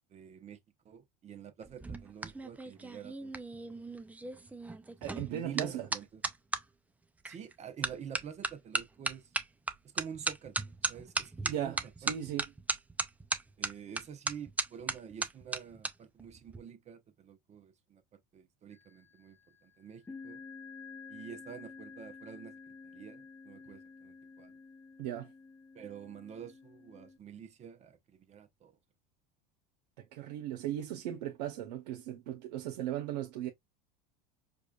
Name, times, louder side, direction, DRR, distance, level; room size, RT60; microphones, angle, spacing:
voice 1, 0.1-0.6 0.8-3.9 5.0-6.2 7.2-9.2 9.8-11.8 12.0-12.1 13.6-18.0 18.3-20.4 21.1-24.5 25.7-28.7, right 8 dB, 30° right, 0.8 m, -48 dB
sound 1, 1.6-6.6 7.3-7.5 7.8-15.9 16.2-16.6, right 3 dB, 5° right, 0.4 m, -36 dB
voice 2, 5.0-5.9 11.5-12.5 25.0-25.3 30.0-33.5, right 11 dB, 85° right, 0.8 m, -37 dB
sound 2, 18.7-19.2 20.0-27.2, left 5 dB, 10° left, 0.7 m, -51 dB
4.9 x 2.4 x 2.3 m
supercardioid pair, 115°, 21 cm